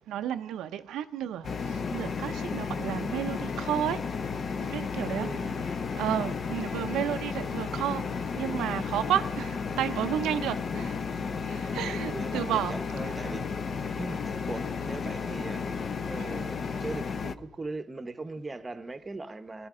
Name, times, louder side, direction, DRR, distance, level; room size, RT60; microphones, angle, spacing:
voice 1, 0.1-4.0 4.6-5.3 6.0-8.0 8.3-11.0 11.5-12.7 16.2-16.3, right 11 dB, 85° right, 9 dB, 0.5 m, -32 dB
sound 1, 1.4-17.4, left 5 dB, 45° left, 0.6 m, -33 dB
voice 2, 5.2-5.8 12.1-13.5 14.0-15.7 16.1-19.7, right 3 dB, 25° right, 11 dB, 0.8 m, -39 dB
19.0 x 12.0 x 3.7 m, 0.85 s
cardioid pair, 90°, 0 cm